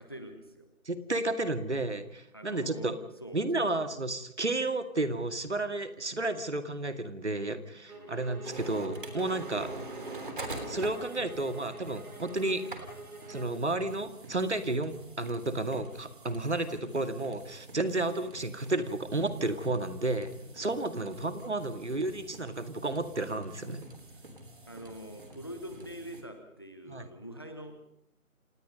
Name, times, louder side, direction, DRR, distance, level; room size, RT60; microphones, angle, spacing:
voice 1, 0.0-0.7 2.3-3.8 7.9-8.3 9.5-9.7 14.6-14.8 21.0-21.3 23.6-23.8 24.7-27.8, equal, 15° left, 7 dB, 1.2 m, -45 dB
voice 2, 0.9-3.0 3.3-9.7 10.7-12.6 13.3-23.8 26.9-27.1, right 2 dB, 50° right, 9 dB, 2.3 m, -32 dB
sound 1, 7.9-13.6, right 2 dB, 85° right, 5.9 m, -47 dB
sound 2, 8.4-26.2, right 2 dB, 35° right, 3.4 m, -46 dB
28.5 x 19.0 x 5.4 m, 0.74 s
figure-of-eight pair, 170°, 43 cm